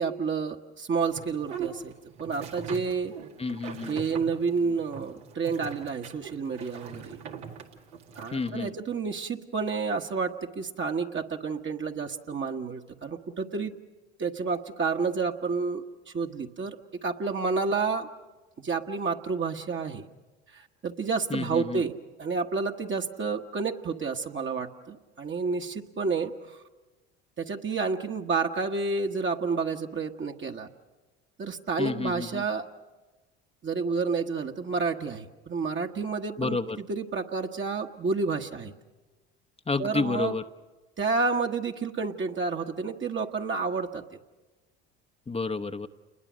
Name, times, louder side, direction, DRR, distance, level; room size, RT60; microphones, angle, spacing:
voice 1, 0.0-1.9 2.2-3.1 3.9-7.2 8.1-13.8 14.2-15.8 16.1-16.8 17.0-18.1 18.6-20.0 20.5-21.9 22.2-26.3 27.4-30.7 31.4-32.6 33.6-38.7 39.8-40.3 41.0-44.0, right 4 dB, 35° right, 3 dB, 1.4 m, -30 dB
sound 1, 1.0-8.5, right 7 dB, 85° right, 2.0 m, -41 dB
voice 2, 3.4-4.0 8.3-8.7 21.3-21.8 31.8-32.4 36.4-36.8 39.7-40.4 45.3-45.9, left 4 dB, 20° left, 9 dB, 0.9 m, -30 dB
29.0 x 21.0 x 6.3 m, 1.2 s
hypercardioid pair, 65°, 33 cm